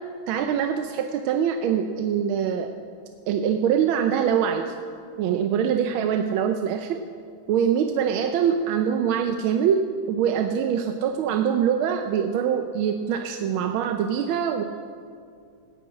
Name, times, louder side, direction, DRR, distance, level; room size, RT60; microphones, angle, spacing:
voice 1, 0.3-2.7 3.3-4.7 5.2-7.0 7.5-14.6, right 8 dB, 80° right, 6 dB, 1.4 m, -24 dB
10.5 x 9.5 x 8.5 m, 2.3 s
omnidirectional pair, 2.3 m